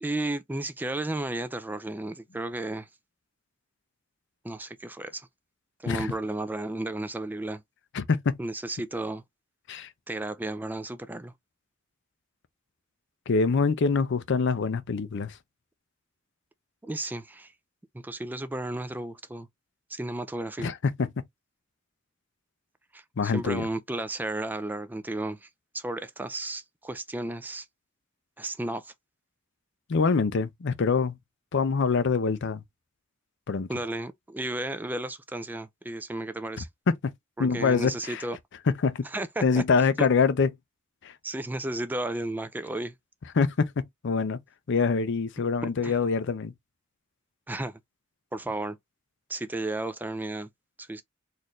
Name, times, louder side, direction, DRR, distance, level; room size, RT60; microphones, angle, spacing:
voice 1, 0.0-2.9 4.4-5.3 5.8-7.6 8.4-9.2 10.1-11.3 16.8-17.5 18.0-19.5 19.9-20.7 22.9-25.5 25.7-27.7 28.4-28.9 33.7-36.7 37.4-38.4 39.1-40.1 41.2-42.9 45.8-45.9 47.5-47.8 48.3-48.8 49.3-50.5 50.8-51.0, right 2 dB, 10° right, 0.3 m, -33 dB
voice 2, 7.9-8.4 9.7-9.9 13.3-15.4 20.6-21.1 23.2-23.7 29.9-31.2 31.5-32.6 33.5-33.7 36.6-37.1 37.4-38.2 38.8-39.0 39.4-40.5 41.0-41.1 43.4-43.7 44.0-44.4 44.7-46.5, left 5 dB, 60° left, 0.5 m, -25 dB
4.2 x 2.6 x 3.0 m
head